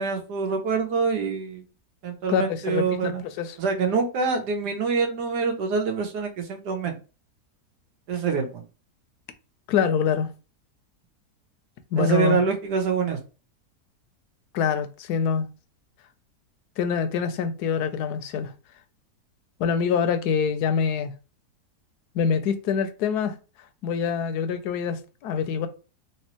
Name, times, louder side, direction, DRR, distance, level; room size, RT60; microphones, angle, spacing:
voice 1, 0.0-1.6 2.0-3.2 3.6-6.9 8.1-8.6 12.0-13.2, right 5 dB, 85° right, 1.4 m, -25 dB
voice 2, 2.3-3.6 9.7-10.3 11.9-12.4 14.5-15.5 16.8-18.5 19.6-21.1 22.1-23.3 23.8-25.7, left 6 dB, 80° left, 1.1 m, -25 dB
3.3 x 3.0 x 2.9 m
omnidirectional pair, 1.7 m